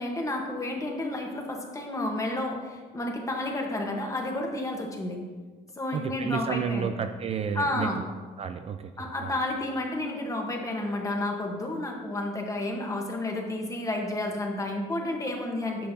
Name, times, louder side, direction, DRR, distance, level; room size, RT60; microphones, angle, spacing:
voice 1, 0.0-5.2 5.8-6.9 7.5-8.0 9.0-15.9, left 1 dB, 20° left, 1 dB, 1.3 m, -31 dB
voice 2, 5.9-8.0 8.4-9.4, right 7 dB, 35° right, 8 dB, 0.4 m, -31 dB
10.0 x 5.5 x 2.8 m, 1.4 s
cardioid pair, 110°, 17 cm